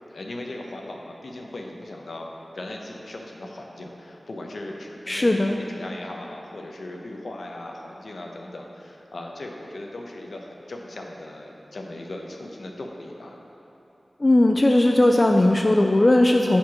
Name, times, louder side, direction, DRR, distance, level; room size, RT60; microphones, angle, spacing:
voice 1, 0.1-13.4, left 1 dB, 75° left, 1 dB, 0.8 m, -38 dB
voice 2, 5.1-5.6 14.2-16.6, left 1 dB, 35° left, 3 dB, 0.3 m, -18 dB
7.6 x 4.4 x 5.8 m, 2.9 s
wide cardioid pair, 60°, 0 cm